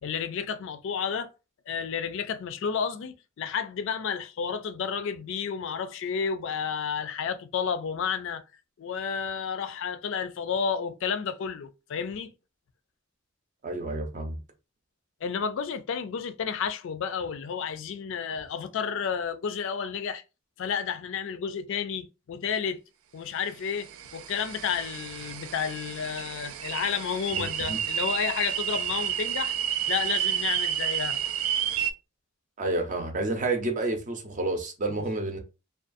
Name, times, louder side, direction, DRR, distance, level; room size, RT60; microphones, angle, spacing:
voice 1, 0.0-1.3 1.7-8.4 8.8-12.3 15.2-20.2 20.6-22.8 23.1-29.5 29.9-31.2 35.0-35.1, left 6 dB, 65° left, 0.4 m, -31 dB
voice 2, 13.6-14.4 27.3-27.8 32.6-35.4, right 2 dB, 40° right, 0.6 m, -30 dB
sound 1, 23.8-31.9, right 9 dB, 80° right, 0.3 m, -30 dB
2.4 x 2.3 x 2.5 m
head